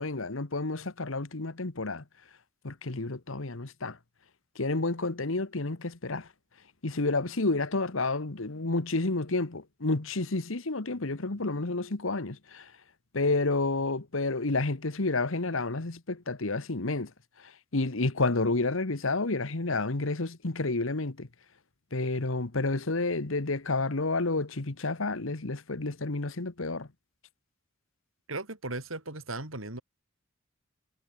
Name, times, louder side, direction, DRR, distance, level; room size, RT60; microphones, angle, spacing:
voice 1, 0.0-2.0 2.6-4.0 4.6-6.3 6.8-12.6 13.1-17.1 17.7-21.3 21.9-26.9, left 3 dB, 70° left, 1.4 m, -30 dB
voice 2, 28.3-29.8, right 2 dB, 75° right, 5.8 m, -37 dB
head